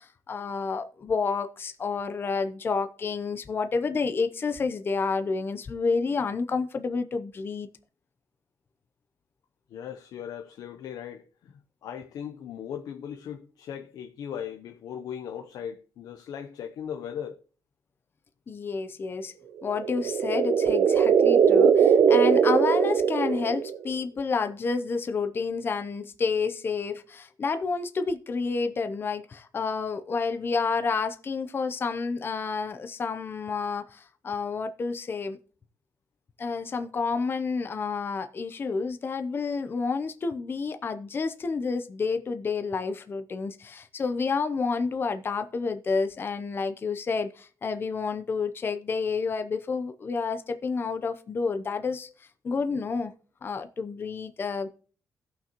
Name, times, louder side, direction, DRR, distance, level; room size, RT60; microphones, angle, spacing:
voice 1, 0.0-7.7 18.5-19.3 19.6-35.4 36.4-53.1 53.4-54.7, left 4 dB, 35° left, 0.7 m, -29 dB
voice 2, 9.7-17.4, left 8 dB, 80° left, 0.8 m, -38 dB
sound 1, 19.7-23.9, right 7 dB, 60° right, 0.5 m, -21 dB
16.0 x 5.8 x 3.0 m
cardioid pair, 125°, 6 cm